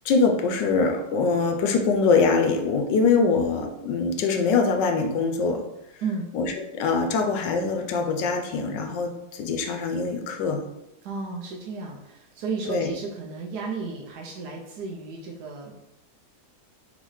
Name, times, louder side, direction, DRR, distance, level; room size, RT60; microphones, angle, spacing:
voice 1, 0.0-5.6 6.3-10.6 12.7-12.9, left 4 dB, 85° left, 5 dB, 1.3 m, -23 dB
voice 2, 11.0-15.8, right 4 dB, 70° right, -2 dB, 1.2 m, -33 dB
3.9 x 3.9 x 3.1 m, 0.89 s
omnidirectional pair, 1.9 m